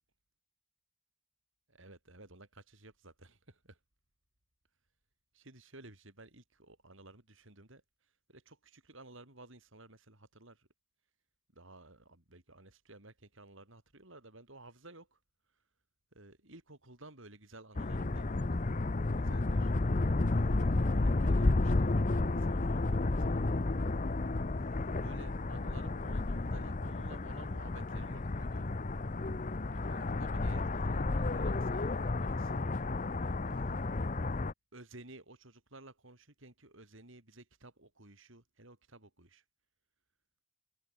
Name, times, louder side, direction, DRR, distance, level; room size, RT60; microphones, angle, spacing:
voice 1, 1.7-3.8 5.3-7.8 8.3-10.6 11.5-15.2 16.1-18.5 18.7-19.7 20.2-21.9 22.4-23.4 24.6-28.8 29.7-32.6 33.5-34.1 34.7-39.4, right 2 dB, 60° right, 4.9 m, -55 dB
sound 1, 17.8-34.5, left 2 dB, 35° left, 0.7 m, -32 dB
head